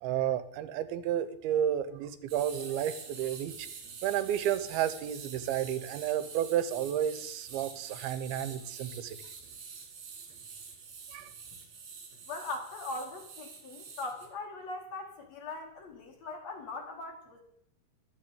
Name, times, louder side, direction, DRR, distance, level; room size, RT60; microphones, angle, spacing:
voice 1, 0.0-3.7 4.0-9.2 11.1-11.3, right 10 dB, 80° right, 13 dB, 2.7 m, -31 dB
sound 1, 2.3-14.3, right 5 dB, 65° right, 3.6 m, -47 dB
voice 2, 12.3-17.4, left 3 dB, 55° left, 1 dB, 2.2 m, -40 dB
12.0 x 6.4 x 8.4 m, 0.75 s
omnidirectional pair, 4.4 m